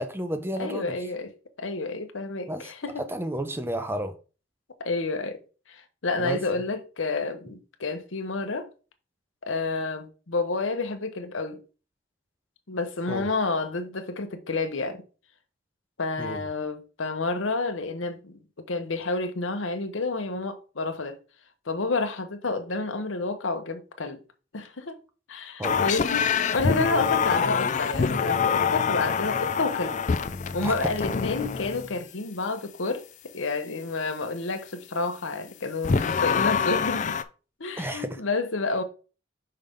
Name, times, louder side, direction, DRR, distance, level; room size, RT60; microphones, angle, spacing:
voice 1, 0.0-0.9 2.5-2.7 3.0-4.1 6.2-6.4 13.1-13.3 16.2-16.4 25.6-25.8 30.6-30.9 36.3-36.4 37.8-38.2, right 1 dB, 10° right, 0.5 m, -31 dB
voice 2, 0.6-1.3 1.6-3.0 4.8-5.4 5.7-8.7 9.4-11.6 12.7-15.0 16.0-18.4 18.7-21.2 21.7-24.2 24.5-25.0 25.3-30.0 30.5-33.1 33.3-37.2 37.6-38.8, left 3 dB, 80° left, 0.9 m, -29 dB
sound 1, 25.6-31.9 35.8-37.2, left 6 dB, 40° left, 0.4 m, -25 dB
5.6 x 5.2 x 3.6 m
head